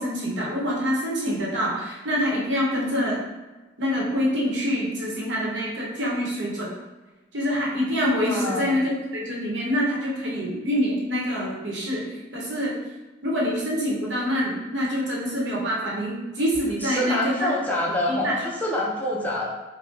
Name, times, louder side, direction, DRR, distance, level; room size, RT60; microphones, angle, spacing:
voice 1, 0.0-3.3 3.8-6.7 7.3-12.8 13.2-17.5 18.1-18.4, equal, 70° right, -4 dB, 0.9 m, -26 dB
voice 2, 8.2-8.7 16.8-19.5, left 1 dB, 10° left, -4 dB, 0.5 m, -26 dB
4.7 x 2.1 x 2.6 m, 1.2 s
head